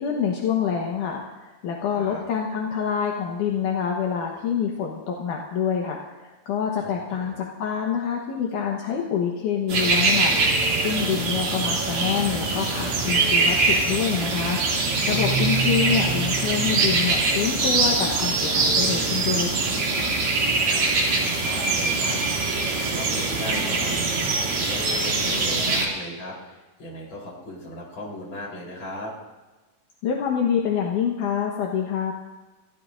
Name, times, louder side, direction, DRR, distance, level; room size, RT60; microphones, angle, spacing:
voice 1, 0.0-19.7 30.0-32.1, left 7 dB, 70° left, -1 dB, 2.6 m, -26 dB
voice 2, 1.9-2.2 6.8-7.3 15.3-15.9 20.5-29.1, left 1 dB, 35° left, -3 dB, 4.6 m, -38 dB
sound 1, 9.7-25.8, right 3 dB, 80° right, 4.3 m, -23 dB
Keyboard (musical), 15.1-18.8, right 6 dB, 60° right, 3.1 m, -32 dB
27.5 x 15.5 x 2.6 m, 1.2 s
omnidirectional pair, 3.9 m